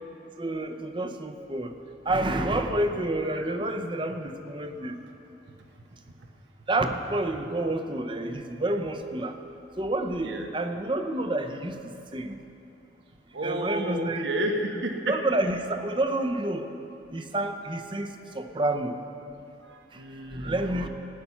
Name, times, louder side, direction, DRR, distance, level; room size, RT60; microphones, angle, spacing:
voice 1, 0.4-1.8 2.1-5.0 6.7-9.4 9.8-12.4 13.4-14.3 15.1-16.7 17.1-19.0 19.9-20.0 20.3-20.9, right 1 dB, 25° right, 7 dB, 0.7 m, -29 dB
voice 2, 13.3-15.2 19.6-20.6, right 1 dB, 80° right, 3 dB, 1.2 m, -32 dB
16.0 x 9.6 x 5.8 m, 2.8 s
head